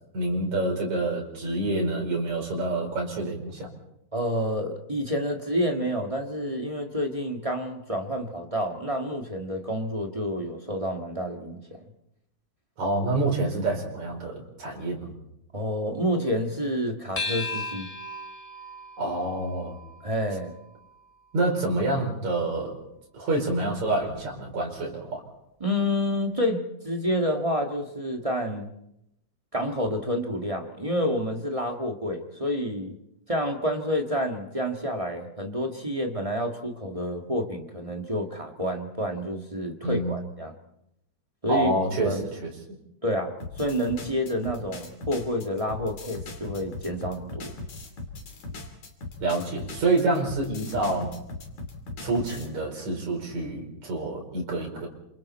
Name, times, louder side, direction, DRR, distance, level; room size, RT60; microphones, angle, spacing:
voice 1, 0.1-3.7 12.8-15.1 19.0-19.8 21.3-22.8 23.1-25.2 39.8-40.3 41.5-42.5 49.2-51.1 52.0-54.9, right 2 dB, 70° right, 0 dB, 6.1 m, -27 dB
voice 2, 4.1-11.8 15.5-17.9 20.0-20.5 25.6-28.7 29.5-33.0 33.3-40.6 41.4-41.7 42.0-42.2 43.0-47.5, equal, 20° right, 2 dB, 1.1 m, -29 dB
sound 1, 17.2-21.9, left 2 dB, 15° left, 1.2 m, -37 dB
sound 2, 43.4-52.5, left 2 dB, 75° left, 4.3 m, -39 dB
28.5 x 26.5 x 4.3 m, 0.81 s
omnidirectional pair, 3.4 m